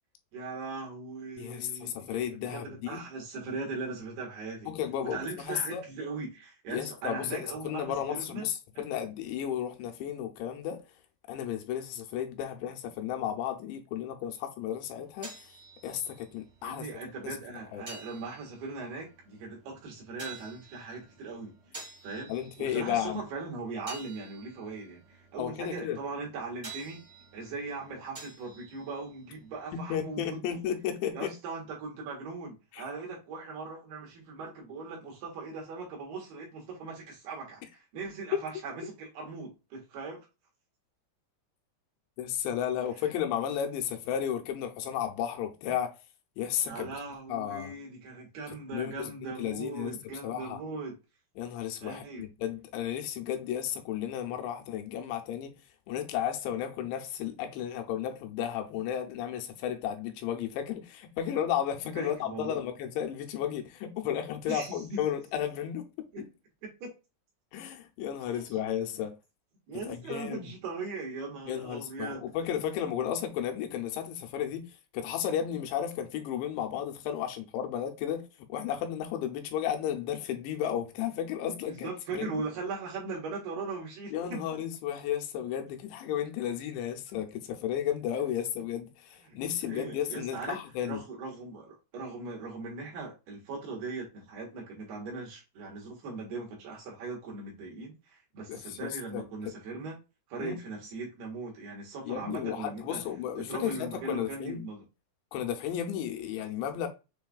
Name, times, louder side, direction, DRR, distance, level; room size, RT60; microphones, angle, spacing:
voice 1, 0.3-4.7 5.0-8.5 8.7-8.8 16.6-22.3 22.6-27.0 27.3-30.6 31.1-40.2 46.6-51.0 51.8-52.2 61.9-62.6 64.5-65.0 66.1-66.2 66.6-66.9 68.3-68.6 69.7-72.2 81.5-84.4 89.2-89.3 89.6-90.6 90.8-100.0 100.3-103.0 103.4-104.9, right 3 dB, 70° right, 3.2 m, -39 dB
voice 2, 1.4-3.0 4.7-5.8 6.7-10.8 11.3-15.3 15.8-16.9 17.2-17.4 17.7-17.8 22.3-23.2 25.4-26.0 29.7-31.3 32.7-32.8 38.3-38.5 42.2-46.0 46.4-46.9 47.3-47.7 48.7-50.6 51.4-55.5 55.9-66.2 67.5-69.2 69.9-70.5 71.5-74.7 74.9-82.3 84.1-91.0 98.5-99.2 100.4-100.6 102.0-104.6 105.3-106.9, left 9 dB, 80° left, 3.0 m, -33 dB
sound 1, 14.8-30.3, right 3 dB, 25° right, 1.0 m, -51 dB
7.1 x 3.2 x 2.3 m
omnidirectional pair, 5.1 m